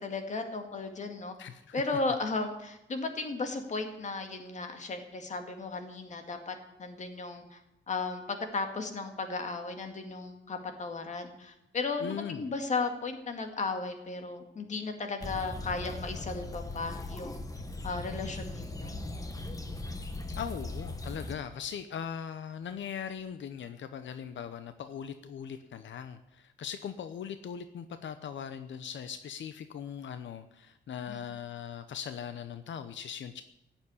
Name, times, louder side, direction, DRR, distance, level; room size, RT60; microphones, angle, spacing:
voice 1, 0.0-1.3 1.7-7.6 7.9-17.4 17.8-19.0 31.1-31.3, left 3 dB, 40° left, 5 dB, 2.2 m, -35 dB
voice 2, 1.4-1.8 12.0-12.5 20.4-33.4, left 8 dB, 80° left, 10 dB, 0.8 m, -40 dB
sound 1, 15.2-21.3, left 2 dB, 20° left, 1.3 m, -39 dB
16.5 x 7.3 x 9.8 m, 0.86 s
wide cardioid pair, 180°, 19 cm